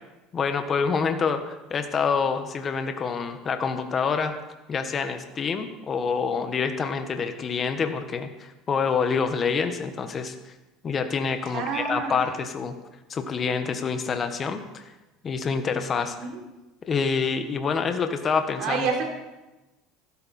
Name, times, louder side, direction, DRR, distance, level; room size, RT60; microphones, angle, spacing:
voice 1, 0.3-4.4 4.7-10.3 10.8-12.7 13.1-14.8 15.2-16.1 16.9-18.9, left 5 dB, 30° left, 7 dB, 1.4 m, -27 dB
voice 2, 11.5-12.2 16.1-16.3 18.6-19.1, right 5 dB, 60° right, 1 dB, 3.7 m, -28 dB
15.5 x 13.0 x 4.4 m, 1.1 s
supercardioid pair, 115°, 0 cm